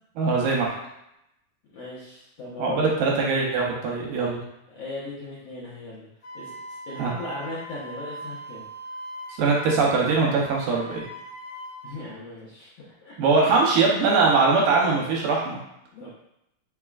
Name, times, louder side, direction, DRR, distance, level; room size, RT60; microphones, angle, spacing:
voice 1, 0.2-0.7 2.6-4.4 7.0-7.1 9.4-11.0 13.2-15.6, right 4 dB, 75° right, -2 dB, 2.4 m, -22 dB
voice 2, 1.7-2.9 4.7-6.1 6.3-8.6 11.8-12.7 13.0-13.2 15.9-16.1, left 2 dB, 70° left, -9 dB, 1.6 m, -37 dB
Wind instrument woodwind instrument, 6.2-11.9, right 1 dB, 50° left, 1.4 m, -40 dB
5.5 x 3.6 x 2.4 m, 0.83 s
omnidirectional pair, 4.1 m